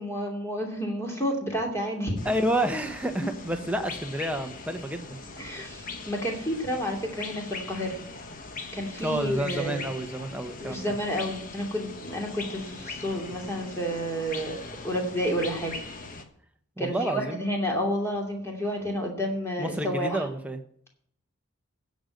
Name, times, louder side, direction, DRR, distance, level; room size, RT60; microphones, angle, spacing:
voice 1, 0.0-2.3 3.2-3.3 5.4-8.0 8.7-9.8 10.6-14.6 14.8-15.8 16.8-20.2, equal, 10° left, 1 dB, 2.6 m, -30 dB
sound 1, 2.2-16.2, left 3 dB, 40° left, 1.3 m, -41 dB
voice 2, 2.2-5.2 9.0-10.9 16.8-17.4 19.6-20.6, right 1 dB, 5° right, 5 dB, 1.0 m, -29 dB
15.5 x 5.3 x 9.0 m, 0.67 s
head